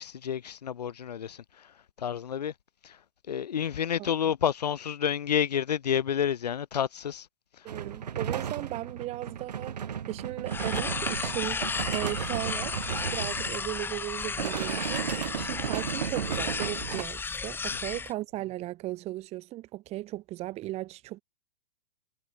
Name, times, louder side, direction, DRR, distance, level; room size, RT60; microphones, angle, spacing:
voice 1, 0.0-2.5 2.8-3.0 3.3-7.3 7.6-7.7 17.7-18.0, left 8 dB, 80° left, 5.9 m, -30 dB
voice 2, 7.6-21.2, right 16 dB, 30° right, 4.5 m, -37 dB
sound 1, 7.7-13.8 14.2-17.0, right 8 dB, 85° right, 3.3 m, -34 dB
sound 2, 10.5-18.1, left 5 dB, 10° left, 1.8 m, -34 dB
hypercardioid pair, 135°, 20 cm